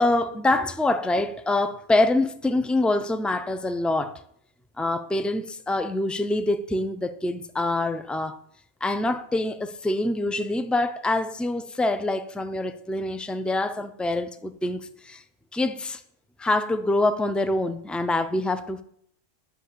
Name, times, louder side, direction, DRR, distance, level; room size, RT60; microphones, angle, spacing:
voice 1, 0.0-4.2 4.8-8.4 8.8-15.2 15.5-16.0 16.4-18.8, left 2 dB, ahead, 0.3 m, -25 dB
10.5 x 6.5 x 8.4 m
omnidirectional pair, 1.3 m